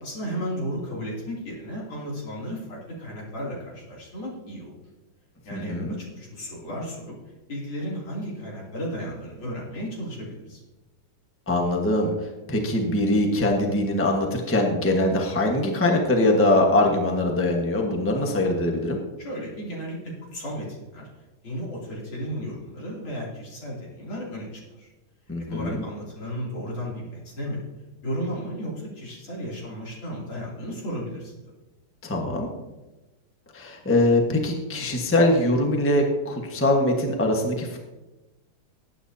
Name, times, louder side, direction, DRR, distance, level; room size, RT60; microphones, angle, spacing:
voice 1, 0.0-4.7 5.5-7.1 7.5-10.6 19.2-21.1 21.4-24.9 25.5-27.6 28.0-31.3, equal, 80° left, -4 dB, 3.8 m, -34 dB
voice 2, 5.5-5.9 11.5-12.1 12.5-19.0 25.3-25.8 32.0-32.5 33.5-37.8, left 1 dB, 10° left, 1 dB, 1.0 m, -22 dB
19.5 x 9.1 x 2.8 m, 1.1 s
omnidirectional pair, 2.2 m